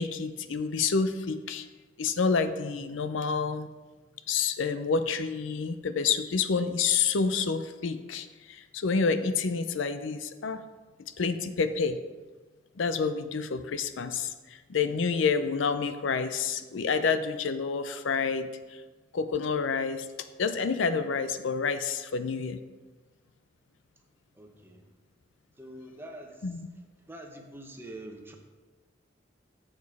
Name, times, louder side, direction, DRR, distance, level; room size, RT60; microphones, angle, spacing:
voice 1, 0.0-1.7 2.0-3.7 4.3-10.6 11.0-12.0 12.8-18.8 19.1-20.1 20.4-22.6 26.4-26.7, left 5 dB, 80° left, 10 dB, 0.5 m, -28 dB
voice 2, 24.3-24.9 25.6-26.6 27.0-28.4, right 1 dB, 10° right, 2 dB, 0.9 m, -45 dB
7.3 x 6.3 x 4.7 m, 1.3 s
head